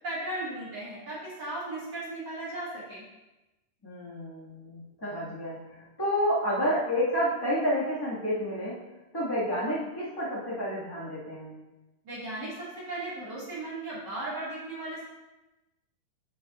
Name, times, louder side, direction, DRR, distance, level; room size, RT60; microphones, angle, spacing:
voice 1, 0.0-3.0 12.0-15.0, right 2 dB, 35° right, -9 dB, 2.2 m, -36 dB
voice 2, 3.8-8.8 9.1-11.5, equal, 10° left, -7 dB, 1.3 m, -30 dB
8.6 x 7.4 x 2.6 m, 1.0 s
omnidirectional pair, 3.8 m